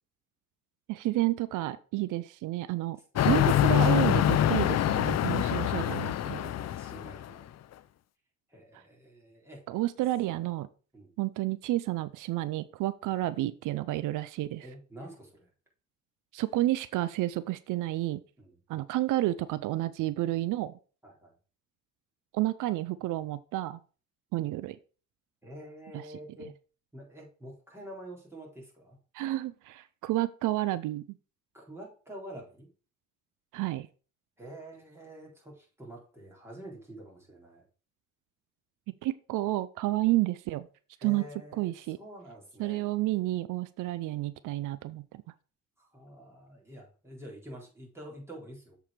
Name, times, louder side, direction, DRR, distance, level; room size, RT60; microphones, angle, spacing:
voice 1, 0.9-3.0 3.2-6.5 9.7-10.7 11.2-14.7 16.3-18.2 18.7-20.7 22.3-23.8 24.3-24.8 25.9-26.0 29.1-31.0 33.5-33.9 39.0-40.7 41.0-41.2 41.6-42.0 42.6-45.2, right 16 dB, 90° right, 15 dB, 0.5 m, -30 dB
sound 1, 3.2-7.3, left 11 dB, 60° left, 0.6 m, -25 dB
voice 2, 5.2-5.7 6.4-7.5 8.5-9.6 10.9-11.1 13.1-13.2 14.6-15.5 18.4-18.5 21.0-21.3 25.4-26.5 26.9-29.0 31.5-32.7 34.4-37.6 41.0-42.9 45.8-48.8, right 1 dB, 10° right, -3 dB, 3.9 m, -47 dB
7.2 x 4.7 x 5.0 m, 0.37 s
cardioid pair, 90°, 30 cm